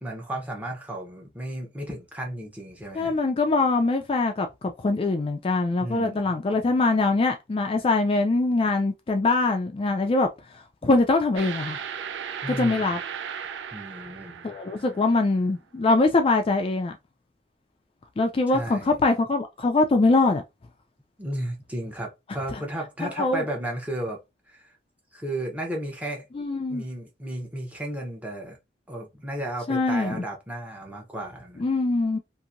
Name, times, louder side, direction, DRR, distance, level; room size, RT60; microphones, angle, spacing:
voice 1, 0.0-3.2 5.8-6.3 12.4-13.0 13.7-14.6 18.5-19.0 21.2-24.2 24.5-24.7 25.1-26.3 26.7-28.6 28.9-31.7, right 1 dB, 10° right, 0.8 m, -34 dB
voice 2, 2.9-11.8 12.5-13.0 14.4-17.0 18.2-20.4 22.5-22.6 23.0-23.4 26.3-26.8 29.7-30.2 31.6-32.2, left 3 dB, 30° left, 0.3 m, -23 dB
sound 1, 11.4-15.2, right 8 dB, 80° right, 0.4 m, -36 dB
2.8 x 2.6 x 2.5 m
head